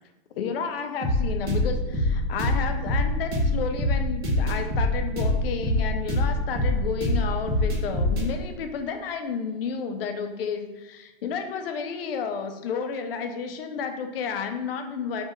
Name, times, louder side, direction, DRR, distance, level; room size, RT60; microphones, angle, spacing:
voice 1, 0.4-15.2, left 6 dB, 65° left, 6 dB, 0.5 m, -31 dB
sound 1, 1.0-8.3, left 1 dB, 25° right, 0.6 m, -24 dB
3.3 x 2.3 x 2.9 m, 1.0 s
hypercardioid pair, 165°, 31 cm